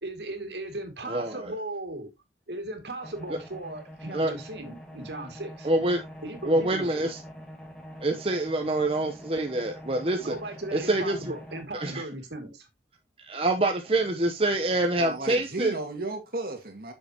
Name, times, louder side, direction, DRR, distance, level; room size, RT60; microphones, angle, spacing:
voice 1, 0.0-2.1 2.5-5.7 6.2-7.0 10.2-12.7, right 1 dB, 75° right, 2.4 m, -37 dB
sound 1, 3.0-11.7, equal, 5° left, 2.0 m, -45 dB
voice 2, 5.6-6.0 6.4-7.2 8.0-10.4 10.7-11.3 11.8-12.0 13.2-15.7, right 2 dB, 35° right, 0.9 m, -26 dB
voice 3, 15.0-16.9, right 2 dB, 55° right, 2.2 m, -34 dB
8.8 x 6.7 x 2.9 m
head